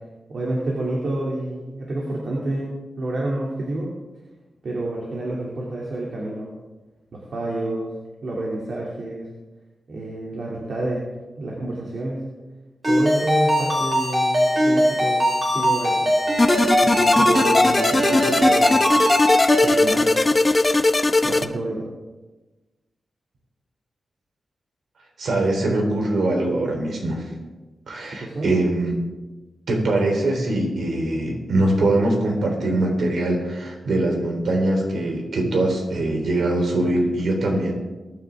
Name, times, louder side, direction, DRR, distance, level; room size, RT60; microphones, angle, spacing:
voice 1, 0.3-3.9 4.6-6.5 7.1-7.9 8.2-9.3 9.9-11.0 11.4-12.3 12.8-16.1 16.8-18.8 19.6-20.1 21.2-21.9 28.1-28.5, right 1 dB, 65° right, -4 dB, 2.9 m, -28 dB
Ringtone, 12.8-19.7, equal, 40° right, 5.5 m, -20 dB
sound 1, 16.4-21.5, left 2 dB, 25° left, 0.7 m, -19 dB
voice 2, 25.2-27.3 27.9-29.0 29.7-37.7, right 2 dB, 80° right, 1 dB, 3.8 m, -22 dB
23.0 x 9.7 x 3.7 m, 1.2 s
wide cardioid pair, 105°, 0 cm